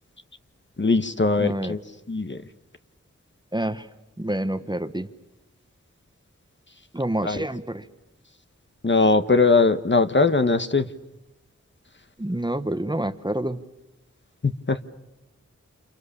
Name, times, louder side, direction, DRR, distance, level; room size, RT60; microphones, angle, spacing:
voice 1, 0.8-1.8 2.1-2.4 7.2-7.4 8.8-10.9 14.4-14.8, left 3 dB, 40° left, 9 dB, 1.2 m, -20 dB
voice 2, 1.4-1.8 3.5-3.9 4.2-5.1 6.9-7.9 12.2-13.6, right 1 dB, 15° right, 11 dB, 1.2 m, -27 dB
29.0 x 28.0 x 7.1 m, 0.96 s
wide cardioid pair, 50°, 29 cm